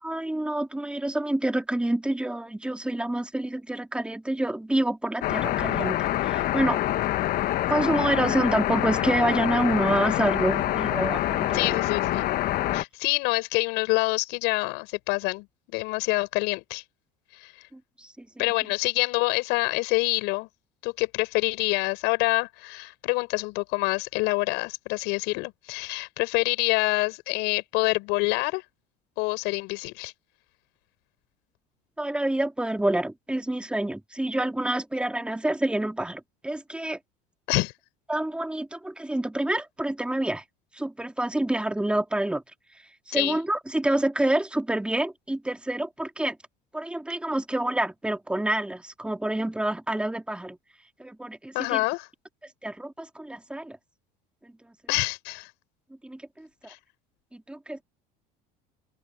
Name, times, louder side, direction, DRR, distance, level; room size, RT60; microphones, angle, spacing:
voice 1, 0.0-6.8 7.7-11.8 17.7-18.3 32.0-37.0 38.1-40.4 40.7-42.4 43.1-46.4 46.7-50.6 51.0-51.8 52.6-53.8 56.0-56.5 57.3-57.8, right 1 dB, 5° right, 2.7 m, -27 dB
sound 1, 5.2-12.8, left 14 dB, 55° left, 1.0 m, -26 dB
voice 2, 11.5-12.2 12.7-15.5 15.7-16.8 17.4-17.5 18.4-20.5 20.8-28.6 29.2-30.1 37.5-37.7 43.1-43.4 51.5-52.1 54.9-55.5 56.7-56.8, left 25 dB, 75° left, 6.8 m, -26 dB
open air
supercardioid pair, 105°, 18 cm